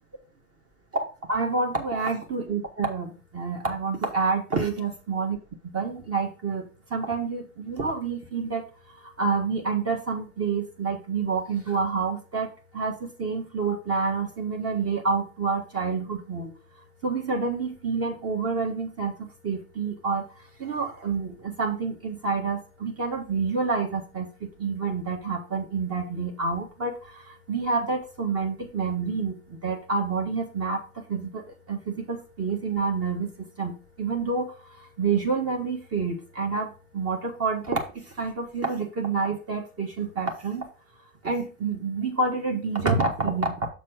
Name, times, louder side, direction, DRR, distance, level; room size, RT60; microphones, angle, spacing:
voice 1, 1.3-5.4 5.6-16.5 17.0-20.3 20.6-40.7 41.2-43.7, right 4 dB, 35° right, 2 dB, 1.7 m, -28 dB
7.0 x 4.2 x 5.0 m, 0.35 s
hypercardioid pair, 85°, 39 cm